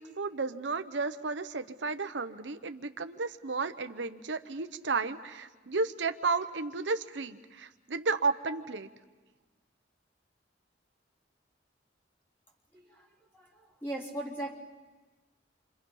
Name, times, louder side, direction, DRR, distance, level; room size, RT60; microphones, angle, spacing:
voice 1, 0.0-8.9, right 4 dB, 80° right, 9 dB, 0.9 m, -33 dB
voice 2, 12.7-13.1 13.3-14.5, right 1 dB, 10° left, -3 dB, 3.7 m, -39 dB
28.5 x 25.5 x 5.5 m, 1.2 s
head